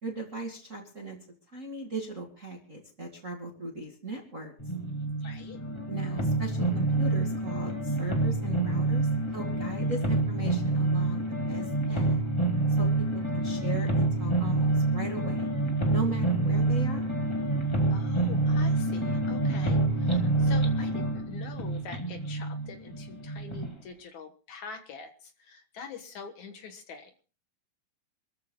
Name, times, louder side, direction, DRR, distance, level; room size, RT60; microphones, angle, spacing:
voice 1, 0.0-1.2 1.5-4.5 5.9-12.2 12.8-15.5 15.9-17.1, right 3 dB, 25° right, 1 dB, 1.8 m, -38 dB
sound 1, 4.6-23.7, right 2 dB, 25° left, 0.5 m, -27 dB
voice 2, 5.2-5.6 17.9-27.1, left 5 dB, 60° left, 6 dB, 2.5 m, -45 dB
27.0 x 14.0 x 2.3 m, 0.38 s
omnidirectional pair, 4.1 m